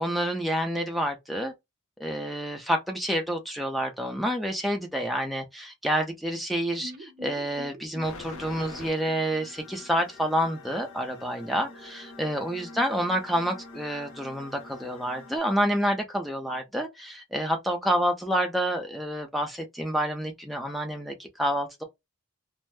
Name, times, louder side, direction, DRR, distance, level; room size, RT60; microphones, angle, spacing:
voice 1, 0.0-1.5 2.0-21.8, equal, ahead, 0.6 m, -28 dB
sound 1, 6.8-10.7 10.9-11.0 11.3-11.4, equal, 45° right, 0.7 m, -46 dB
sound 2, 8.0-15.4, left 3 dB, 65° left, 0.7 m, -46 dB
2.7 x 2.1 x 3.3 m
head